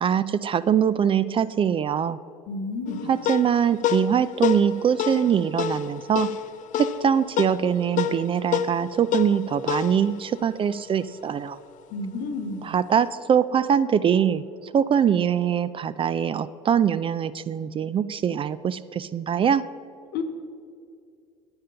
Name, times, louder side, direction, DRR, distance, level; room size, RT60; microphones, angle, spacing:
voice 1, 0.0-2.2 3.1-6.3 6.8-11.6 12.6-19.6, right 8 dB, 30° right, 16 dB, 0.4 m, -23 dB
voice 2, 2.5-3.0 11.9-12.7 20.1-20.2, left 3 dB, 65° left, 7 dB, 1.2 m, -30 dB
sound 1, 2.9-11.6, left 8 dB, 50° left, 0.5 m, -29 dB
8.9 x 8.8 x 5.6 m, 2.3 s
hypercardioid pair, 75°, 17 cm